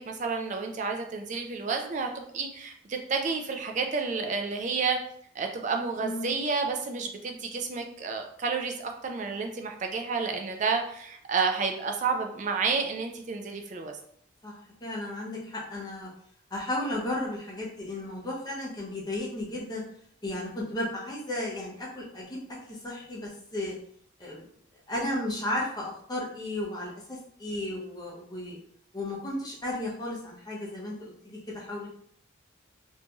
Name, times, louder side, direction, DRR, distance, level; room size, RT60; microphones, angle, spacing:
voice 1, 0.0-5.0 5.3-14.0, right 4 dB, 35° right, 4 dB, 0.3 m, -30 dB
voice 2, 6.0-6.3 14.4-16.1 16.5-19.8 20.2-23.8 24.2-24.5 24.9-28.6 28.9-31.9, left 1 dB, 20° left, -5 dB, 0.6 m, -34 dB
3.0 x 2.6 x 2.2 m, 0.64 s
head